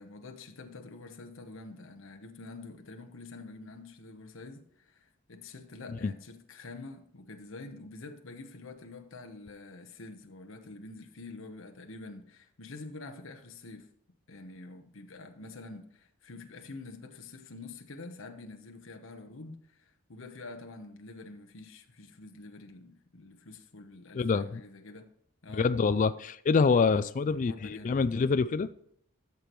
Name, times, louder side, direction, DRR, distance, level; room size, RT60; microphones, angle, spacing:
voice 1, 0.0-13.9 14.3-25.1 25.4-25.7 26.7-28.0, left 3 dB, 65° left, 1.0 m, -47 dB
voice 2, 24.2-24.6 25.6-28.7, left 5 dB, 35° left, 0.3 m, -26 dB
13.0 x 6.9 x 3.1 m
head